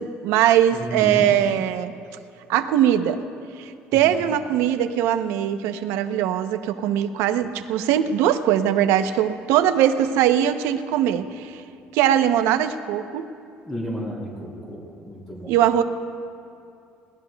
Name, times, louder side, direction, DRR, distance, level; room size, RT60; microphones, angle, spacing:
voice 1, 0.0-1.9 2.5-3.2 3.6-11.5 11.9-13.3 15.5-15.8, right 10 dB, 85° right, 10 dB, 0.7 m, -21 dB
voice 2, 0.7-1.3 3.9-4.0 13.6-15.5, equal, 10° left, -5 dB, 3.6 m, -32 dB
22.0 x 18.0 x 2.3 m, 2.5 s
cardioid pair, 110°, 4 cm